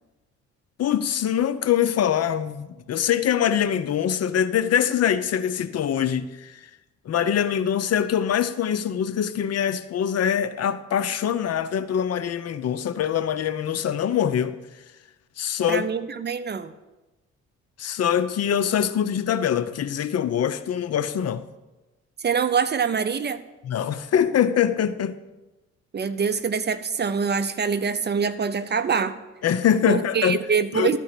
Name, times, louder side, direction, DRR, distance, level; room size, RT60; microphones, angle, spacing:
voice 1, 0.8-6.6 7.1-14.6 15.4-15.9 17.8-21.4 23.6-25.2 29.4-30.4 30.7-30.9, left 9 dB, 55° left, 0.7 m, -23 dB
voice 2, 15.7-16.7 22.2-23.4 25.9-29.2 29.9-31.0, right 6 dB, 35° right, 0.7 m, -24 dB
13.5 x 4.5 x 8.3 m
cardioid pair, 90°, 30 cm